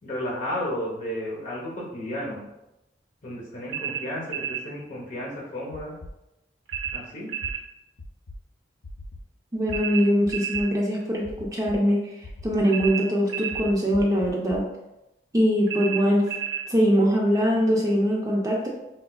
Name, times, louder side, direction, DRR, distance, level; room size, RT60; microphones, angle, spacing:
voice 1, 0.0-2.4 3.2-6.0 6.9-7.3, equal, 45° left, -3 dB, 0.9 m, -33 dB
sound 1, 3.7-4.7 6.7-7.7 9.7-10.7 12.7-13.7 15.7-16.7, right 9 dB, 85° right, 0.7 m, -31 dB
sound 2, 5.7-6.1 6.7-7.0 7.4-7.5 8.0-8.4 8.8-9.2 9.7-9.8 10.2-10.6 11.2-11.8 12.2-12.9 13.5-14.6, left 2 dB, 80° left, 0.4 m, -40 dB
voice 2, 9.5-12.0 12.4-14.6 15.3-16.3 16.7-18.7, equal, 20° right, -2 dB, 0.4 m, -22 dB
4.3 x 2.3 x 2.2 m, 0.93 s
head